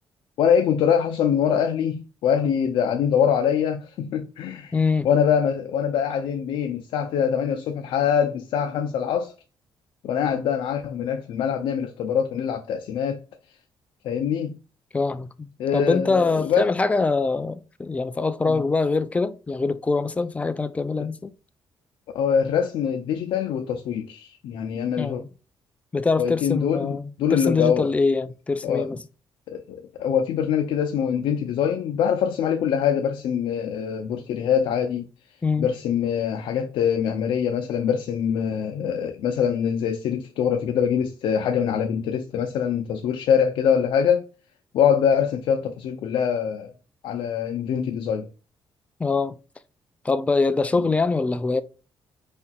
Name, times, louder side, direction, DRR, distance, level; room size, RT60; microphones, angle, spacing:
voice 1, 0.4-4.8 5.0-9.3 10.0-13.2 14.0-14.6 15.6-16.7 18.5-18.6 21.0-21.1 22.1-25.2 26.2-27.9 28.6-28.9 29.5-35.1 35.6-44.3 44.7-46.7 47.0-48.3 50.8-50.9, left 8 dB, 85° left, 0.6 m, -24 dB
voice 2, 4.7-5.1 14.9-21.3 25.0-25.3 25.9-29.0 35.4-35.7 49.0-49.4 50.0-51.6, left 4 dB, 15° left, 0.4 m, -24 dB
5.0 x 4.2 x 2.3 m
cardioid pair, 140°, 9 cm